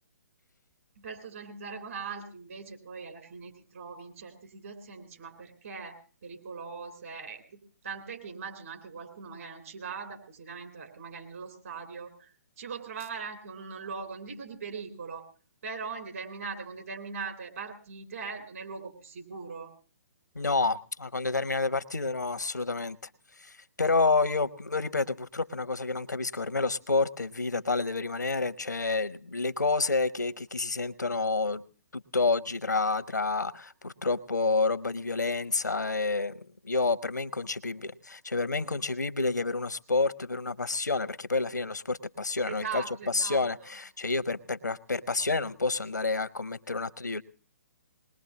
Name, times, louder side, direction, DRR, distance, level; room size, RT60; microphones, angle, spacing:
voice 1, 1.0-12.3 12.6-15.3 15.6-19.7 42.5-43.7, right 5 dB, 55° right, 3.6 m, -40 dB
voice 2, 20.4-23.0 23.4-31.6 31.9-47.2, left 3 dB, 85° left, 0.7 m, -29 dB
21.0 x 20.5 x 2.8 m
figure-of-eight pair, 130°, 9 cm